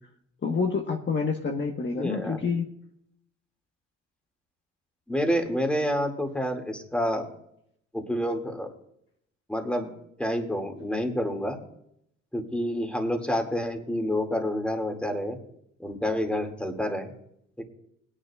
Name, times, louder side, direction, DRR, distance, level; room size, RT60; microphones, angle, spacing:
voice 1, 0.4-2.7, left 5 dB, 40° left, 1 dB, 1.3 m, -28 dB
voice 2, 1.9-2.4 5.1-7.3 7.9-8.7 9.5-9.9 10.2-11.6 12.3-15.4 15.8-17.1 17.6-17.7, equal, 5° left, 3 dB, 2.3 m, -28 dB
20.0 x 9.9 x 2.4 m, 0.74 s
cardioid pair, 90°, 30 cm